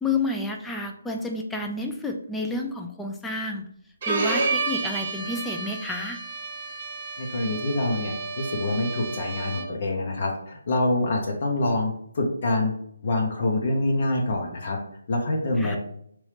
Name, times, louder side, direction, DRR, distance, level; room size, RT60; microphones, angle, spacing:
voice 1, 0.0-3.6 4.1-6.2 15.6-15.8, left 2 dB, 5° left, 2 dB, 0.3 m, -30 dB
Bowed string instrument, 4.0-9.9, right 3 dB, 35° right, 0.8 m, -31 dB
voice 2, 7.2-12.7 13.0-14.8 15.1-15.8, left 2 dB, 45° left, 1 dB, 0.7 m, -26 dB
3.0 x 2.7 x 3.3 m, 0.69 s
hypercardioid pair, 160°, 0 cm